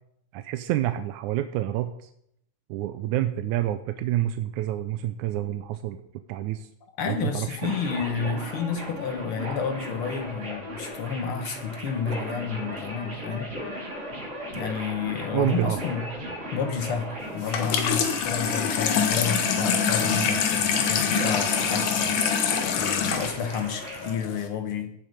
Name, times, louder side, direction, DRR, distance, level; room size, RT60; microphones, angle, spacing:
voice 1, 0.3-2.1 2.7-6.0 6.3-6.7 7.0-7.7 15.3-15.8, right 13 dB, 80° right, 9 dB, 2.0 m, -28 dB
voice 2, 7.0-13.5 14.5-16.0 16.5-24.9, left 6 dB, 60° left, 7 dB, 1.6 m, -30 dB
sound 1, 7.6-24.1, equal, 50° right, 6.7 m, -37 dB
Water tap faucet / Sink (filling or washing), 17.4-24.5, left 6 dB, 85° left, 2.9 m, -25 dB
17.0 x 7.3 x 5.2 m, 0.72 s
omnidirectional pair, 3.5 m